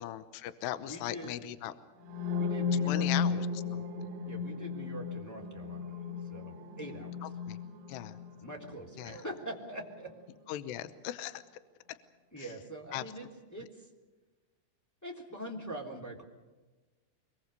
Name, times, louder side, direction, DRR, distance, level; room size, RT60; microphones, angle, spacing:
voice 1, 0.0-1.7 2.9-3.8 7.2-7.6 7.9-8.2 9.0-9.2 10.5-11.4 11.9-12.0 12.4-12.5 12.9-13.0, left 13 dB, 80° left, 12 dB, 2.6 m, -38 dB
voice 2, 0.8-1.3 2.3-3.4 4.2-5.9 6.3-7.3 8.4-10.1 12.3-13.9 15.0-16.2, right 1 dB, 5° left, -2 dB, 2.2 m, -43 dB
sound 1, 2.0-9.9, left 6 dB, 85° right, 5.0 m, -35 dB
24.5 x 22.5 x 6.8 m, 1.2 s
omnidirectional pair, 5.7 m